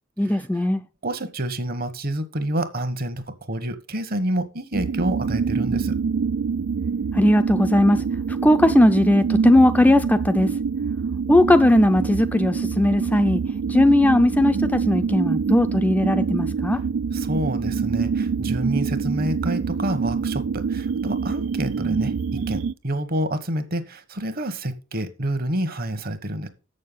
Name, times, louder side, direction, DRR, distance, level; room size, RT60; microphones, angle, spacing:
voice 1, 0.2-0.8 7.1-10.5 11.3-13.4 13.7-16.8, left 1 dB, 10° left, 0.4 m, -18 dB
voice 2, 1.0-5.9 17.1-26.5, right 1 dB, 50° right, 1.2 m, -28 dB
sound 1, 4.7-22.7, right 5 dB, 85° right, 0.4 m, -25 dB
7.4 x 6.6 x 5.5 m
head